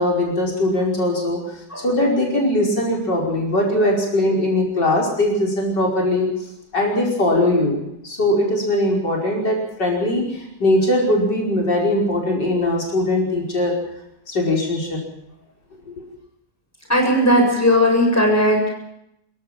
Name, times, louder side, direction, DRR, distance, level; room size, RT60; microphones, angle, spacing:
voice 1, 0.0-1.4 1.8-6.3 6.7-7.8 8.0-13.7 14.3-15.0 16.0-16.1, left 1 dB, 80° left, -1 dB, 5.8 m, -20 dB
voice 2, 16.9-18.7, equal, 10° left, -1 dB, 7.4 m, -17 dB
26.0 x 15.0 x 7.5 m, 0.79 s
omnidirectional pair, 1.8 m